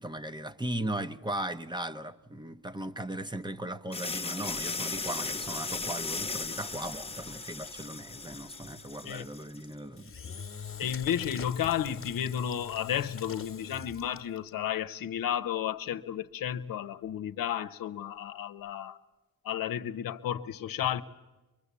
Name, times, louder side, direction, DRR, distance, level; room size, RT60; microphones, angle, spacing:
voice 1, 0.0-10.4 10.8-10.9, right 1 dB, 15° right, 1.0 m, -37 dB
sound 1, 3.9-9.6, left 3 dB, 15° left, 1.2 m, -37 dB
Engine / Drill, 10.0-14.5, left 7 dB, 35° left, 1.4 m, -43 dB
voice 2, 10.8-19.0 19.4-21.0, left 10 dB, 75° left, 1.0 m, -32 dB
24.0 x 22.0 x 8.4 m
cardioid pair, 85°, 34 cm